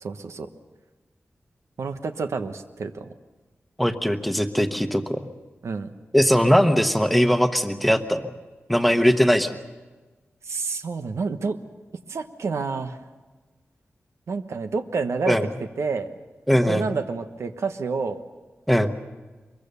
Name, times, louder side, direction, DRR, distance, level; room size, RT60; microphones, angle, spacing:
voice 1, 0.0-0.5 1.8-3.1 5.6-5.9 10.4-11.6 12.1-13.0 14.3-16.1 16.6-18.2, right 4 dB, 90° right, 8 dB, 1.2 m, -29 dB
voice 2, 3.8-5.2 6.1-8.3 8.7-9.6 15.3-15.5 16.5-16.9 18.7-18.9, equal, ahead, 8 dB, 1.1 m, -20 dB
23.5 x 22.5 x 6.8 m, 1.3 s
wide cardioid pair, 130°, 5 cm